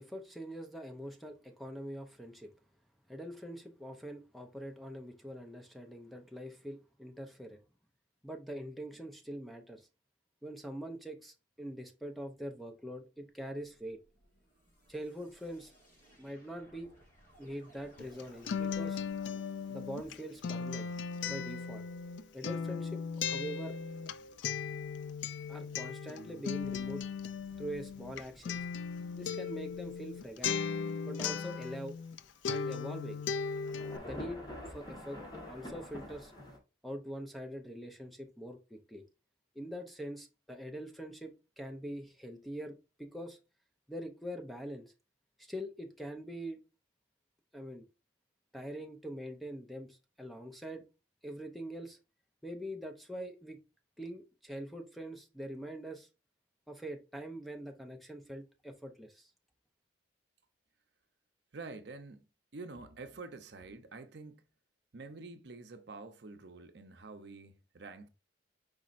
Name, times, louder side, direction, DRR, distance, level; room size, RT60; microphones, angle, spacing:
voice 1, 0.0-2.5 3.1-7.6 8.2-9.9 10.4-14.0 14.9-15.7 16.2-16.9 17.4-19.0 19.7-20.9 21.3-21.8 22.3-23.8 25.5-27.0 27.6-28.6 29.2-30.6 31.0-32.0 32.5-33.2 34.0-35.2 35.5-36.3 36.8-39.0 39.5-43.4 43.9-44.9 45.4-46.6 47.5-47.9 48.5-50.8 51.2-52.0 52.4-53.6 54.0-56.1 56.7-59.3, equal, ahead, 0.5 m, -43 dB
sound 1, 13.5-20.5, right 1 dB, 45° left, 2.0 m, -62 dB
Acoustic guitar, 18.0-32.2 32.4-34.0, left 6 dB, 75° left, 0.3 m, -37 dB
sound 2, 18.6-36.6, left 1 dB, 20° left, 1.3 m, -52 dB
voice 2, 61.5-62.2 62.5-64.4 64.9-68.1, right 3 dB, 60° right, 0.6 m, -47 dB
5.1 x 4.2 x 2.5 m
head